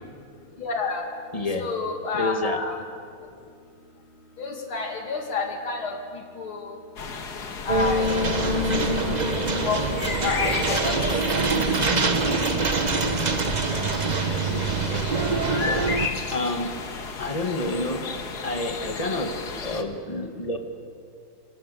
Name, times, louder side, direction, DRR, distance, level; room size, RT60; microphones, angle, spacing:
voice 1, 0.6-1.0 1.6-2.8 4.4-5.9 6.4-6.7 7.6-8.5 8.8-8.9 9.6-9.8 10.2-10.9 11.4-11.5, left 4 dB, 85° left, 2 dB, 3.4 m, -29 dB
voice 2, 1.3-1.7 2.1-2.6 14.2-15.1 15.6-15.9 16.3-16.8 17.2-18.1 18.4-19.3 19.6-20.6, left 2 dB, 20° left, 5 dB, 1.7 m, -29 dB
sound 1, 7.0-19.8, left 5 dB, 55° left, 2.0 m, -33 dB
sound 2, 7.7-16.1, right 3 dB, 30° right, 0.9 m, -24 dB
28.0 x 23.5 x 7.0 m, 2.3 s
omnidirectional pair, 2.2 m